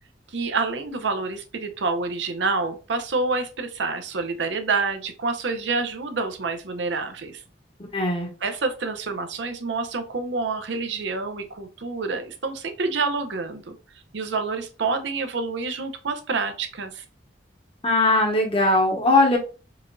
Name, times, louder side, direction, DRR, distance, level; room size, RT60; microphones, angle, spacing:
voice 1, 0.3-7.4 8.4-13.8 14.1-17.0, right 4 dB, 75° right, 7 dB, 0.6 m, -27 dB
voice 2, 7.9-8.3 17.8-19.4, left 2 dB, 30° left, 2 dB, 1.0 m, -19 dB
4.8 x 2.6 x 2.2 m, 0.34 s
head